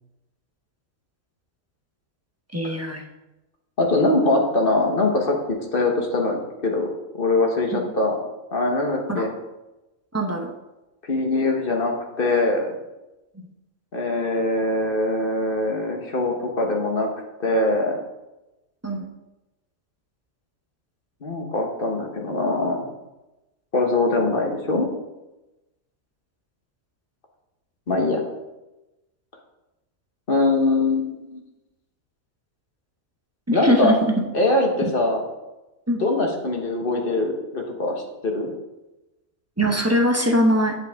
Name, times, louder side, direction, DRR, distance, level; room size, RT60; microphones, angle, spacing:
voice 1, 2.5-3.0 7.7-7.8 9.1-9.3 10.1-10.5 13.4-13.5 18.8-19.1 33.5-34.2 34.8-34.9 35.9-36.0 39.6-40.7, equal, 15° right, 1 dB, 0.7 m, -22 dB
voice 2, 3.8-6.9 7.2-8.2 8.5-9.3 11.1-12.7 13.9-17.1 17.4-18.0 21.2-22.9 23.7-24.9 27.9-28.2 30.3-31.4 33.5-34.0 34.3-35.2 36.0-38.5, left 2 dB, 45° left, 2 dB, 1.3 m, -22 dB
7.9 x 7.6 x 3.6 m, 1.0 s
omnidirectional pair, 1.4 m